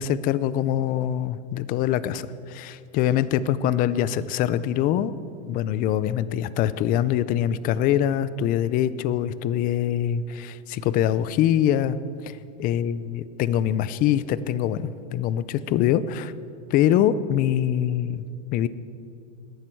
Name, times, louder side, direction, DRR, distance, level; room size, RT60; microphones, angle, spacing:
voice 1, 0.0-5.1 5.5-12.0 12.6-16.3 16.7-18.2 18.5-18.7, left 11 dB, 25° left, 16 dB, 0.4 m, -24 dB
20.0 x 14.5 x 4.5 m, 2.5 s
supercardioid pair, 140°, 37 cm